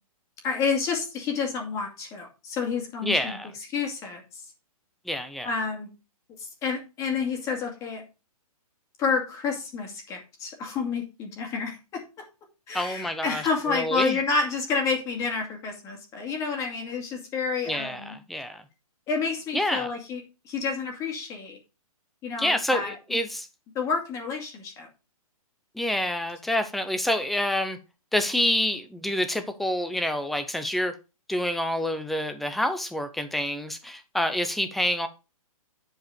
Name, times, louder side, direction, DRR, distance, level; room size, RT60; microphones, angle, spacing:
voice 1, 0.4-3.4 3.7-4.2 5.4-5.9 6.4-8.0 9.0-12.2 12.7-18.1 19.1-21.6 22.2-22.9 23.7-24.9, left 5 dB, 15° left, 2.3 m, -29 dB
voice 2, 3.0-3.5 5.1-5.5 12.7-14.2 17.7-18.6 19.5-19.9 22.4-23.5 25.7-27.8 28.1-30.9 31.3-35.1, left 1 dB, ahead, 0.4 m, -27 dB
10.5 x 4.8 x 5.1 m
hypercardioid pair, 160°, 19 cm